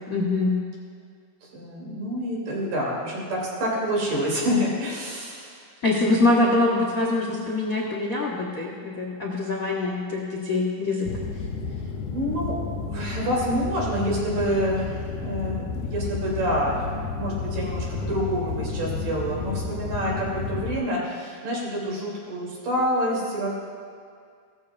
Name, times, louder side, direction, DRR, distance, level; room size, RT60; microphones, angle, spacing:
voice 1, 0.1-0.5 5.8-11.1, left 2 dB, 65° left, -4 dB, 0.8 m, -24 dB
voice 2, 1.5-5.6 12.1-12.6 12.9-16.8 17.1-23.5, equal, 85° right, -4 dB, 4.5 m, -27 dB
sound 1, 11.1-20.8, left 4 dB, 85° left, 2.3 m, -31 dB
17.0 x 14.0 x 2.5 m, 2.1 s
omnidirectional pair, 3.7 m